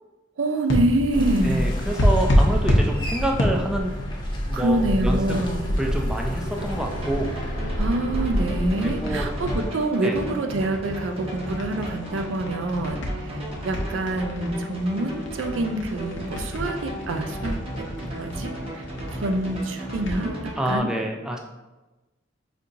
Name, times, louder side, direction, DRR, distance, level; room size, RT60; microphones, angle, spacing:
voice 1, 0.4-1.7 4.5-5.8 7.7-17.6 18.0-20.9, right 2 dB, 80° right, 5 dB, 0.4 m, -26 dB
sound 1, 0.7-4.8 5.3-6.5 7.4-7.5 8.4-20.2, equal, 70° left, 0.7 m, -28 dB
sound 2, 1.1-9.7, equal, 25° left, 0.7 m, -28 dB
voice 2, 1.4-3.9 4.5-5.4 5.8-7.3 8.8-9.3 10.0-10.2 20.6-21.4, right 1 dB, 5° right, 1 dB, 0.3 m, -27 dB
sound 3, 6.6-20.8, equal, 30° right, 0.8 m, -36 dB
5.0 x 2.7 x 2.6 m, 1.1 s
head